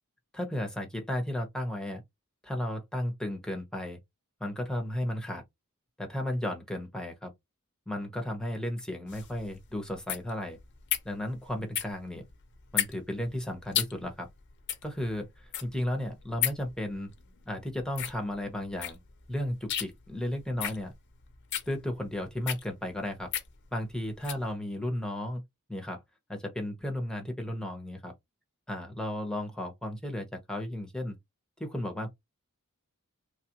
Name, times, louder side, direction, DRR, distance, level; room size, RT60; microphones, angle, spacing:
voice 1, 0.3-2.0 2.4-4.0 4.4-5.4 6.0-7.3 7.9-10.6 11.0-12.2 12.7-14.3 14.8-17.1 17.5-19.0 19.3-20.9 21.7-23.3 23.7-25.4 25.7-26.0 26.3-28.1 28.7-31.1 31.6-32.1, left 1 dB, 5° left, 0.8 m, -34 dB
sound 1, 9.1-24.5, left 10 dB, 55° left, 0.7 m, -36 dB
3.4 x 2.4 x 2.8 m
head